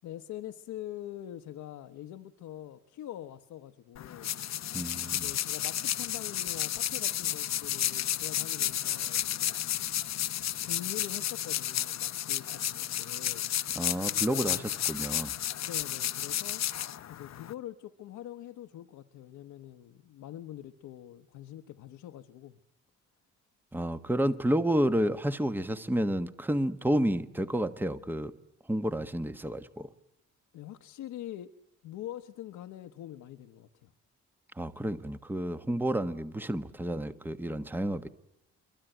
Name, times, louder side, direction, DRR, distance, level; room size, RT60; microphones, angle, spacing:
voice 1, 0.0-4.3 5.1-9.6 10.6-13.5 14.1-14.6 15.6-22.6 30.5-31.5 31.8-33.9, left 12 dB, 85° left, 1.1 m, -44 dB
sound 1, 4.0-17.5, left 11 dB, 60° left, 1.0 m, -32 dB
voice 2, 4.7-5.3 13.7-15.3 23.7-28.3 28.7-29.9 34.6-38.1, right 1 dB, 5° right, 1.2 m, -30 dB
26.5 x 23.5 x 9.1 m
cardioid pair, 90°, 30 cm